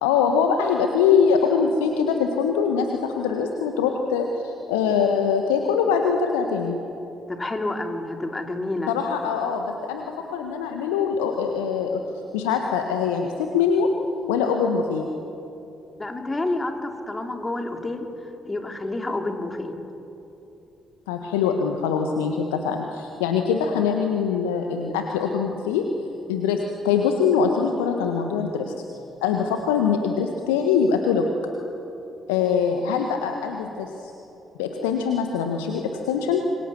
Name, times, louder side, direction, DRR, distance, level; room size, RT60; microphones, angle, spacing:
voice 1, 0.0-6.8 8.9-12.0 12.3-13.9 14.3-15.1 21.1-25.9 26.3-28.7 29.2-31.2 32.3-34.1 34.6-36.4, left 6 dB, 70° left, 4 dB, 1.4 m, -23 dB
voice 2, 7.3-8.9 16.0-19.7, left 2 dB, 20° left, 4 dB, 3.3 m, -29 dB
28.5 x 23.5 x 7.2 m, 2.9 s
figure-of-eight pair, 40°, 0 cm